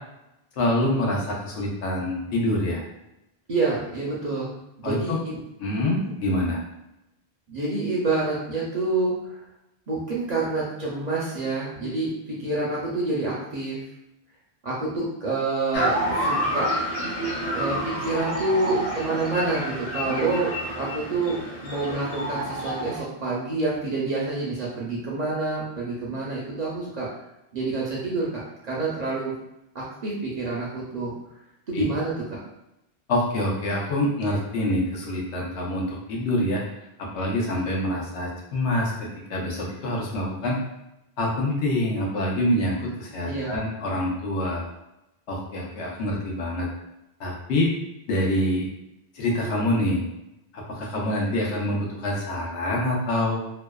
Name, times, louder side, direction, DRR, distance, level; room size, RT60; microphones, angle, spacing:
voice 1, 0.6-2.8 4.8-5.2 5.6-6.6 31.7-31.8 33.1-36.6 37.0-40.6 41.2-44.6 45.3-46.7 47.2-47.7 48.1-48.7 49.1-50.0 50.5-53.4, left 1 dB, 90° left, -2 dB, 1.0 m, -26 dB
voice 2, 3.5-4.5 4.8-5.4 5.8-6.0 7.5-9.4 9.9-12.1 12.4-13.8 14.6-16.7 17.3-21.4 21.6-27.1 27.5-29.3 29.7-31.1 31.7-32.4 43.2-43.5, right 3 dB, 55° right, -5 dB, 0.5 m, -28 dB
sound 1, 15.7-23.0, equal, 50° left, 0.5 m, -28 dB
2.6 x 2.1 x 2.2 m, 0.88 s
omnidirectional pair, 1.1 m